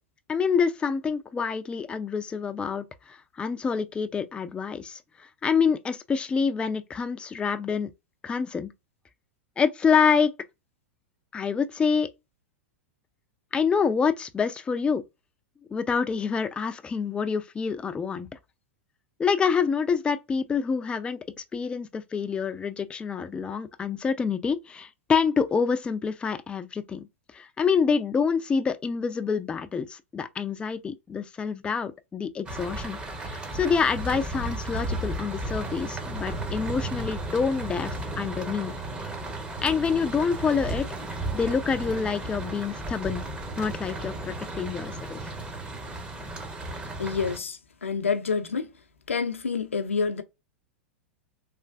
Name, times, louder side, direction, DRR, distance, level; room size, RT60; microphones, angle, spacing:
voice 1, 0.3-5.0 5.4-7.9 8.2-8.7 9.6-10.3 11.3-12.1 13.5-15.0 15.7-18.3 19.2-21.2 21.5-27.1 27.3-33.0 33.3-38.7 39.6-40.9 41.3-43.2 43.6-44.9 45.2-45.3, left 6 dB, 15° left, 0.3 m, -27 dB
sound 1, 32.5-47.4, right 2 dB, 15° right, 0.7 m, -34 dB
voice 2, 47.0-48.7 49.1-50.2, left 5 dB, 90° left, 0.5 m, -28 dB
3.3 x 2.4 x 2.3 m
hypercardioid pair, 100°, 7 cm